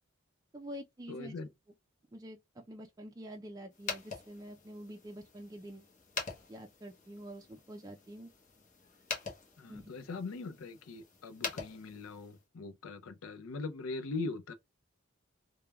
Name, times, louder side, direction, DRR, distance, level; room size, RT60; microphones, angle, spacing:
voice 1, 0.5-1.3 2.1-5.9 6.5-8.3 9.7-9.8, equal, 20° right, 0.4 m, -47 dB
voice 2, 1.1-1.5 9.6-14.5, left 3 dB, 85° left, 0.5 m, -41 dB
sound 1, 3.7-12.4, left 4 dB, 40° left, 0.9 m, -45 dB
3.3 x 2.2 x 2.2 m
head